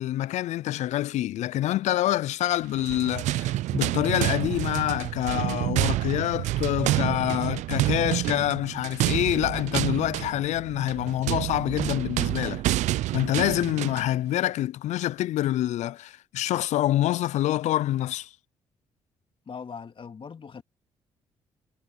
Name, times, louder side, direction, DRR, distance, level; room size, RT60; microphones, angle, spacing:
voice 1, 0.0-12.6 13.1-18.3, left 14 dB, 75° left, 0.5 m, -26 dB
sound 1, 2.7-14.1, right 15 dB, 75° right, 0.4 m, -28 dB
voice 2, 19.5-20.6, left 6 dB, 45° left, 2.3 m, -40 dB
supercardioid pair, 60°, 12 cm